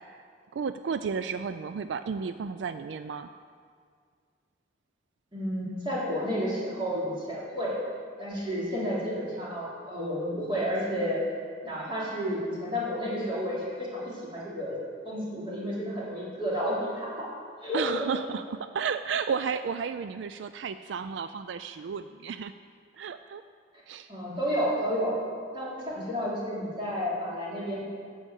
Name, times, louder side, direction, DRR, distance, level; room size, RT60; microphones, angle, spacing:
voice 1, 0.5-3.3 17.7-22.5 23.0-23.4 23.9-24.1, right 6 dB, 80° right, 11 dB, 0.4 m, -33 dB
voice 2, 5.3-7.8 8.2-11.2 11.6-14.8 15.0-17.3 17.6-17.8 24.1-25.2 25.5-27.8, equal, 30° right, -7 dB, 3.7 m, -31 dB
9.9 x 7.3 x 8.2 m, 2.1 s
head